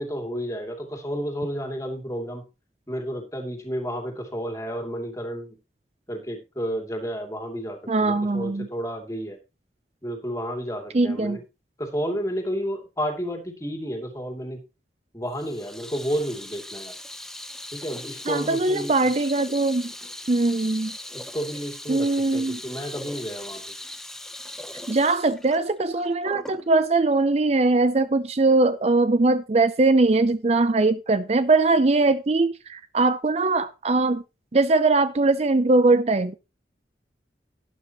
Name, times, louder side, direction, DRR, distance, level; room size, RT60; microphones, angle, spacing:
voice 1, 0.0-2.4 2.9-5.6 6.1-9.4 10.0-11.4 11.8-14.6 15.1-16.9 17.7-19.1 21.1-23.6, equal, 20° left, 2.7 m, -31 dB
voice 2, 7.9-8.7 10.9-11.4 18.3-19.9 20.3-21.0 21.9-22.6 24.9-34.2 34.5-36.3, right 3 dB, 35° right, 0.5 m, -21 dB
Water tap faucet / Sink (filling or washing), 15.3-26.7, left 1 dB, 5° left, 0.8 m, -39 dB
12.0 x 11.0 x 3.0 m
head